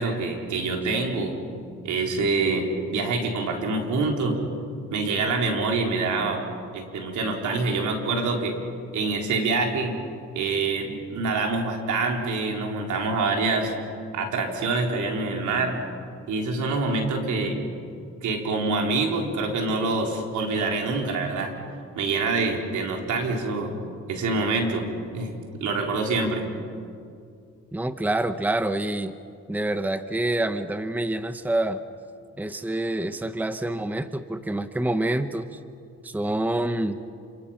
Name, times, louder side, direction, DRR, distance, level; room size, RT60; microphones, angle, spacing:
voice 1, 0.0-1.4 1.8-4.4 4.9-6.5 6.7-8.5 8.9-10.0 10.3-13.7 14.1-15.8 16.3-17.6 18.2-21.5 22.0-23.7 24.1-24.9 25.1-26.4, right 3 dB, 75° right, 1 dB, 4.3 m, -26 dB
voice 2, 27.7-29.1 29.5-31.8 32.4-35.6 36.0-37.0, right 1 dB, 5° right, 10 dB, 0.9 m, -27 dB
28.5 x 27.0 x 5.8 m, 2.4 s
cardioid pair, 90°, 30 cm